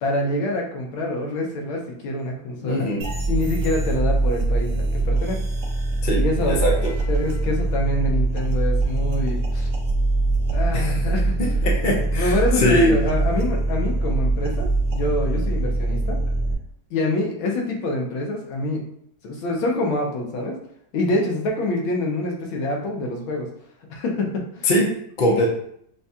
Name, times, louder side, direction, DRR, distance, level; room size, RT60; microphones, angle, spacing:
voice 1, 0.0-2.9 3.3-5.4 6.1-6.6 7.1-9.7 10.5-11.4 12.1-16.2 16.9-18.9 19.2-20.6 20.9-23.5 23.9-24.7, left 2 dB, 75° left, 0 dB, 1.6 m, -26 dB
voice 2, 2.6-3.0 6.0-6.7 10.7-10.9 11.4-12.9 24.6-24.9 25.2-25.4, equal, 55° left, -2 dB, 0.5 m, -21 dB
sound 1, 3.0-16.5, right 2 dB, 55° right, 1.0 m, -23 dB
6.8 x 2.3 x 2.7 m, 0.69 s
omnidirectional pair, 2.3 m